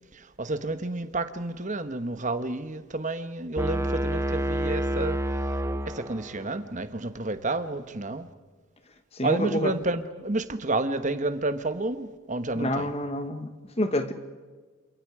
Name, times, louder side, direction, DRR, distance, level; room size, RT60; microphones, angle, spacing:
voice 1, 0.1-5.2 5.8-8.3 9.2-12.9, right 2 dB, 35° right, 1.3 m, -30 dB
sound 1, 3.6-6.5, right 1 dB, 15° right, 0.8 m, -28 dB
voice 2, 9.2-9.7 12.5-13.5 13.8-14.1, left 1 dB, 30° left, 1.7 m, -27 dB
28.0 x 27.5 x 4.9 m
head